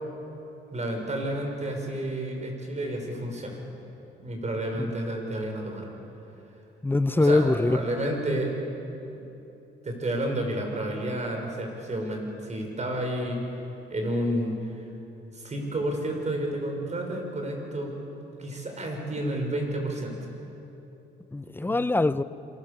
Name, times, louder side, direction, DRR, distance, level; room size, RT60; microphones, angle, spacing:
voice 1, 0.7-3.6 4.2-5.9 7.1-8.5 9.1-9.2 9.8-13.5 13.9-14.9 15.3-17.9 18.4-20.2 21.6-21.8, right 1 dB, 35° right, 6.3 m, -30 dB
voice 2, 6.8-7.8 21.3-22.2, left 2 dB, 10° left, 0.7 m, -23 dB
27.0 x 24.0 x 7.0 m
cardioid pair, 90°, 20 cm